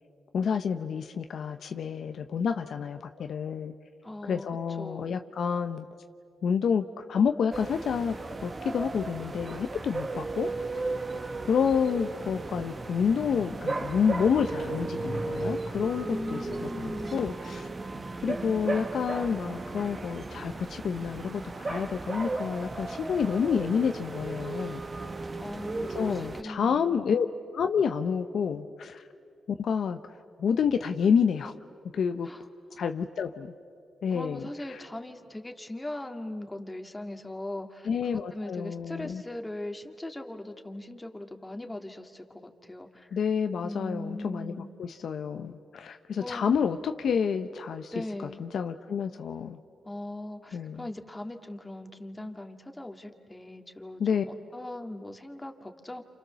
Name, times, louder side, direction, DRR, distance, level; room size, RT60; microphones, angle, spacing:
voice 1, 0.3-3.7 4.2-5.9 6.4-8.1 8.4-10.8 11.5-17.7 18.2-24.8 25.9-27.3 27.5-29.0 29.6-30.0 30.4-31.5 31.9-32.3 32.8-33.5 34.0-34.8 37.9-39.2 43.1-47.9 48.4-49.6 50.5-50.9 54.0-54.2, left 6 dB, 70° left, 7 dB, 0.9 m, -29 dB
voice 2, 4.0-5.2 16.0-17.2 25.4-27.0 32.2-32.4 32.7-32.8 34.1-43.2 43.6-44.7 46.2-46.5 47.9-48.4 49.8-56.0, left 1 dB, 15° left, 4 dB, 2.2 m, -39 dB
sound 1, 7.5-26.4, right 3 dB, 40° right, 1.4 m, -35 dB
29.0 x 28.0 x 7.0 m, 2.3 s
cardioid pair, 65°, 0 cm